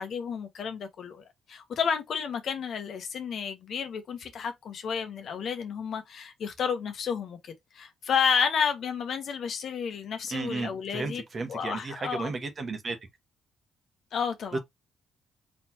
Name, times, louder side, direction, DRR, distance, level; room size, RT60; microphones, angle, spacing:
voice 1, 0.0-11.2 11.5-12.3 14.1-14.6, left 6 dB, 60° left, 1.1 m, -31 dB
voice 2, 10.3-13.0 14.5-14.6, right 3 dB, 40° right, 1.1 m, -33 dB
4.1 x 3.3 x 2.9 m
cardioid pair, 90°, 0 cm